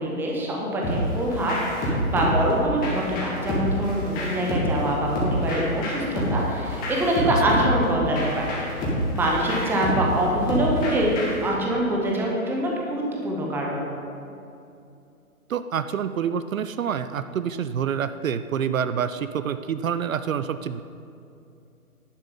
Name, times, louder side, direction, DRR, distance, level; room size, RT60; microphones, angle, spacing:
voice 1, 0.0-8.5 9.2-11.1 11.4-13.8, right 1 dB, 5° right, -2 dB, 0.8 m, -25 dB
sound 1, 0.8-11.5, equal, 20° left, 2.1 m, -27 dB
voice 2, 15.5-20.8, right 8 dB, 65° right, 12 dB, 0.5 m, -27 dB
11.0 x 6.8 x 5.6 m, 2.6 s
figure-of-eight pair, 130°, 44 cm